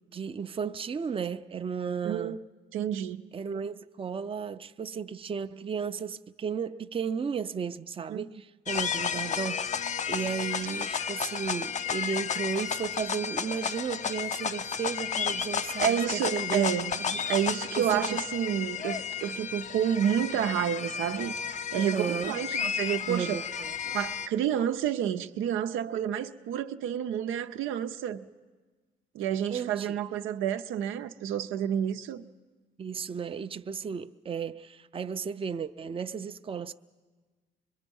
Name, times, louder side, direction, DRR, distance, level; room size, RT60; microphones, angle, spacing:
voice 1, 0.1-2.4 3.3-16.7 17.0-17.2 17.8-18.2 21.8-22.4 23.1-23.7 29.5-30.0 32.8-36.7, right 6 dB, 25° right, 0.5 m, -34 dB
voice 2, 2.0-2.4 2.7-3.2 8.1-8.2 15.8-17.0 17.3-23.4 23.9-28.2 29.1-32.2, right 9 dB, 90° right, 0.7 m, -29 dB
sound 1, 8.7-24.3, left 7 dB, 35° left, 0.5 m, -32 dB
25.5 x 22.0 x 5.4 m
cardioid pair, 90°, 20 cm